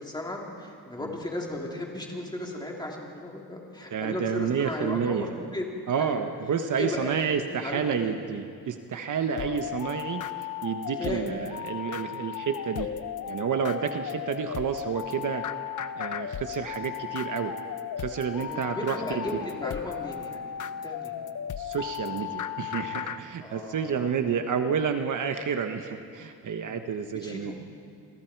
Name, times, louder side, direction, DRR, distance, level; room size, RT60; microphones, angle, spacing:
voice 1, 0.0-5.6 6.0-6.2 6.8-7.2 7.5-8.2 9.4-9.6 11.0-11.3 13.9-14.0 18.4-21.1 23.4-24.3 26.6-26.8 27.2-27.5, left 1 dB, 10° left, -2 dB, 3.6 m, -36 dB
voice 2, 3.9-5.3 5.9-12.9 13.3-15.5 16.0-17.5 18.0-19.4 21.6-27.5, right 7 dB, 55° right, 6 dB, 1.2 m, -30 dB
sound 1, 9.3-23.2, left 9 dB, 55° left, 0.9 m, -35 dB
29.0 x 23.5 x 4.7 m, 2.3 s
cardioid pair, 140°, 38 cm